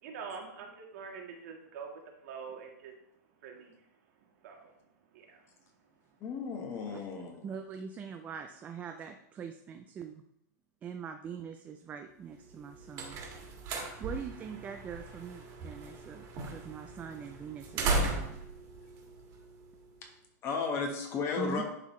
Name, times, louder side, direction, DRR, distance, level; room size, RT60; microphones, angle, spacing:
voice 1, 0.0-3.0 3.4-6.2, right 5 dB, 55° right, 0 dB, 1.7 m, -47 dB
voice 2, 6.2-7.5 20.0-20.1 20.4-21.6, left 5 dB, 25° left, 2 dB, 1.3 m, -34 dB
voice 3, 7.4-10.2 10.8-13.2 13.7-18.4 21.4-21.6, right 6 dB, 15° right, 6 dB, 0.3 m, -43 dB
sound 1, 12.5-19.9, right 3 dB, 35° right, 1.7 m, -37 dB
11.0 x 3.9 x 3.1 m, 0.80 s
supercardioid pair, 155°, 10 cm